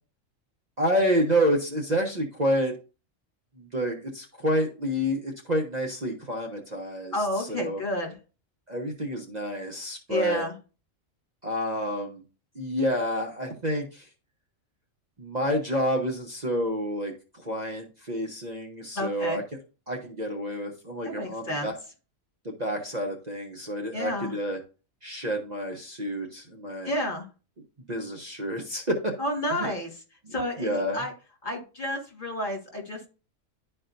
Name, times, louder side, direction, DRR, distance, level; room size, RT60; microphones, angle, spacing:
voice 1, 0.8-2.7 3.6-7.8 8.7-10.4 11.4-12.2 12.5-14.1 15.2-17.1 17.4-19.4 19.9-21.8 22.4-24.6 25.0-26.9 27.9-29.1 29.5-29.7 30.6-31.0, equal, 35° right, 1 dB, 1.0 m, -29 dB
voice 2, 7.1-8.1 10.1-10.5 19.0-19.4 21.0-21.7 23.9-24.3 26.8-27.3 29.2-29.9 30.3-31.1 31.4-33.1, left 1 dB, 40° left, 0 dB, 2.2 m, -30 dB
11.5 x 4.4 x 2.6 m, 0.33 s
omnidirectional pair, 1.4 m